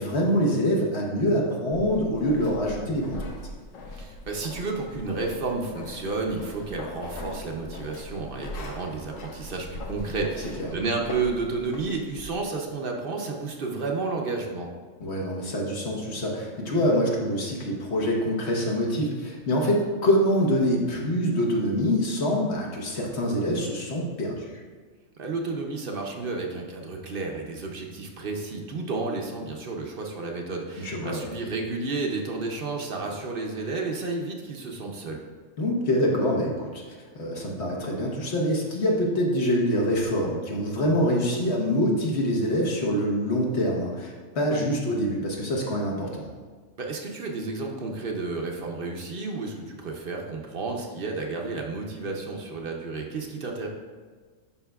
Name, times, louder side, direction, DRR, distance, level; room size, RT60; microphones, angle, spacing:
voice 1, 0.0-3.2 15.0-24.5 30.8-31.3 35.6-36.8 37.1-46.3, equal, 60° left, -1 dB, 1.4 m, -25 dB
sound 1, 1.7-12.4, left 1 dB, 80° left, 1.1 m, -40 dB
voice 2, 3.9-14.7 25.2-35.2 46.8-53.7, right 3 dB, 50° right, 1 dB, 0.8 m, -31 dB
11.0 x 5.0 x 2.3 m, 1.5 s
omnidirectional pair, 1.3 m